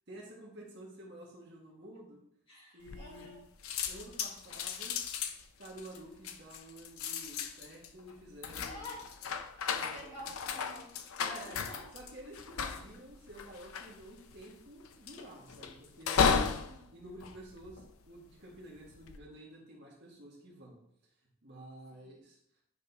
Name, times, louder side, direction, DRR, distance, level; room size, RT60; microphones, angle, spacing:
voice 1, 0.1-2.2 2.7-3.4 3.9-5.0 5.6-8.9 9.7-10.1 11.2-11.6 11.9-16.5 16.9-20.8 21.4-22.4, right 1 dB, 50° right, -3 dB, 1.9 m, -50 dB
voice 2, 2.5-3.4 8.6-9.3 9.6-11.2 11.5-11.8 16.5-16.9 21.9-22.1, left 1 dB, 25° left, -7 dB, 2.7 m, -49 dB
sound 1, 2.9-3.4 3.6-18.2 18.8-19.2, left 6 dB, 75° left, 0.6 m, -35 dB
10.0 x 5.1 x 2.8 m, 0.69 s
head